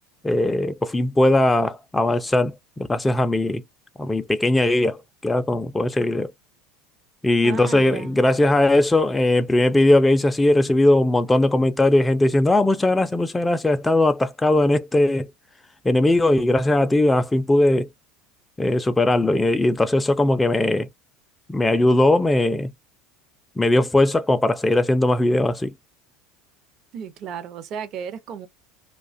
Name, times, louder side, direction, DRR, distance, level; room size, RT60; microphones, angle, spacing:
voice 1, 0.2-3.6 4.0-6.3 7.2-15.3 15.8-17.9 18.6-20.9 21.5-22.7 23.6-25.7, left 1 dB, 10° left, 0.3 m, -19 dB
voice 2, 7.4-8.2 26.9-28.5, right 7 dB, 50° right, 0.6 m, -34 dB
2.3 x 2.2 x 2.5 m
hypercardioid pair, 90°, 0 cm